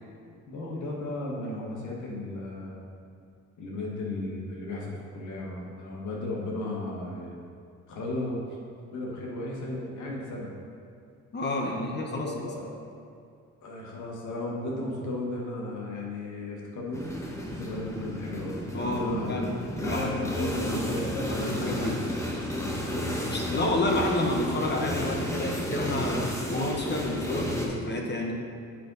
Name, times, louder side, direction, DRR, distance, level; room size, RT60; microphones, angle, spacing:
voice 1, 0.5-2.8 3.6-7.3 7.9-8.4 8.9-10.5 12.2-12.7 13.6-17.1 17.5-22.0 22.8-23.1, left 2 dB, 75° left, -2 dB, 1.6 m, -35 dB
voice 2, 11.3-12.3 18.7-19.6 19.9-21.0 21.3-22.0 23.3-28.3, left 1 dB, 35° left, 1 dB, 1.2 m, -30 dB
sound 1, 16.9-27.7, equal, 10° left, 1.1 m, -32 dB
7.6 x 5.2 x 4.1 m, 2.5 s
cardioid pair, 90°, 30 cm